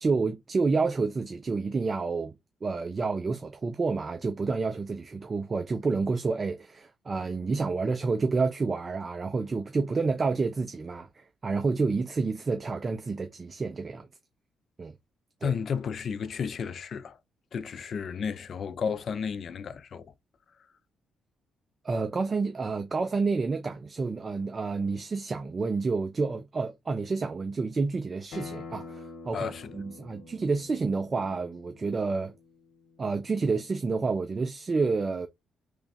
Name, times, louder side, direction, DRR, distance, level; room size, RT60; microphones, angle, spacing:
voice 1, 0.0-2.3 2.6-14.1 14.8-14.9 15.4-15.5 21.8-32.3 33.0-35.3, right 4 dB, 35° right, 0.4 m, -29 dB
voice 2, 15.4-17.2 17.5-20.1 29.3-29.8, left 6 dB, 55° left, 0.4 m, -32 dB
Acoustic guitar, 28.3-33.5, left 4 dB, 70° left, 1.1 m, -46 dB
3.2 x 2.3 x 4.1 m
cardioid pair, 90°, 0 cm